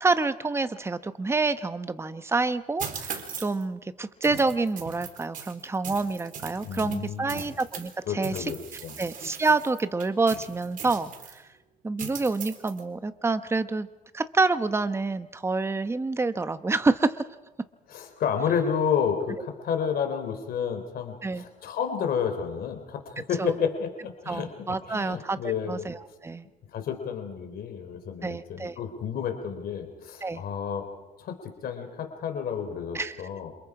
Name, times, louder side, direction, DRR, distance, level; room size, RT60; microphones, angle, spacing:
voice 1, 0.0-8.3 9.0-11.4 11.8-13.9 14.1-17.2 21.2-21.4 23.4-23.5 24.3-26.0 26.2-26.4 28.2-28.7 30.2-30.4 32.9-33.2, right 3 dB, 15° right, 11 dB, 1.0 m, -27 dB
sound 1, 2.8-3.6 4.2-8.0 8.2-11.4 12.0-12.8, right 7 dB, 50° right, 3.8 m, -39 dB
voice 2, 6.6-7.5 8.1-8.9 17.9-25.9 26.7-30.8 31.2-33.5, left 7 dB, 65° left, 6 dB, 3.6 m, -31 dB
28.5 x 27.0 x 4.9 m, 1.1 s
cardioid pair, 110°, 17 cm